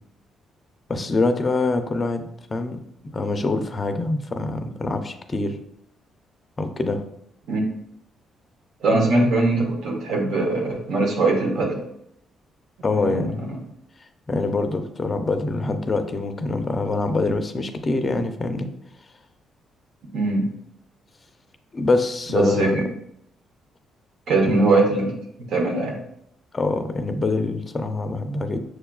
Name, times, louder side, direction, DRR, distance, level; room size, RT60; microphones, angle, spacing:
voice 1, 0.9-2.2 2.5-2.8 3.1-5.6 6.6-7.0 12.8-13.5 14.3-18.7 21.7-22.9 24.4-24.7 26.5-28.6, left 3 dB, 30° left, 7 dB, 0.4 m, -24 dB
voice 2, 8.8-11.8 13.0-13.6 20.1-20.5 22.3-22.8 24.3-25.1 25.5-26.0, right 2 dB, 75° right, 0 dB, 0.8 m, -21 dB
6.2 x 2.3 x 2.2 m, 0.75 s
cardioid pair, 90°, 0 cm